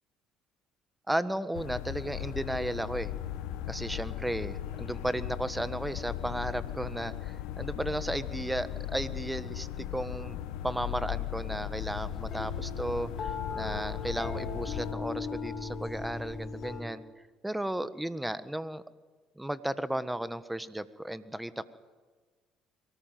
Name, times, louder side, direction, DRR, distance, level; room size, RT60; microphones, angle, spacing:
voice 1, 1.1-3.1 3.7-10.4 10.6-17.0 17.4-18.8 19.4-21.7, right 1 dB, 5° right, 13 dB, 1.4 m, -34 dB
sound 1, 1.5-14.9, left 12 dB, 75° left, 1.4 m, -37 dB
sound 2, 11.8-16.8, left 4 dB, 45° left, 5.6 m, -38 dB
23.5 x 19.5 x 9.4 m, 1.4 s
hypercardioid pair, 70°, 0 cm